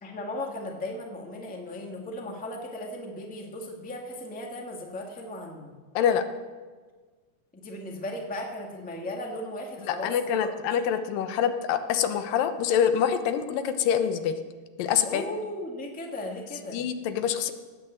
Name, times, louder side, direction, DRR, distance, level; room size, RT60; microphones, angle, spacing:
voice 1, 0.0-5.7 7.5-10.8 15.0-16.8, left 1 dB, 5° left, 0 dB, 1.1 m, -36 dB
voice 2, 9.8-14.4 14.8-15.2 16.7-17.5, left 8 dB, 90° left, 9 dB, 2.7 m, -25 dB
17.5 x 9.0 x 7.8 m, 1.4 s
omnidirectional pair, 3.8 m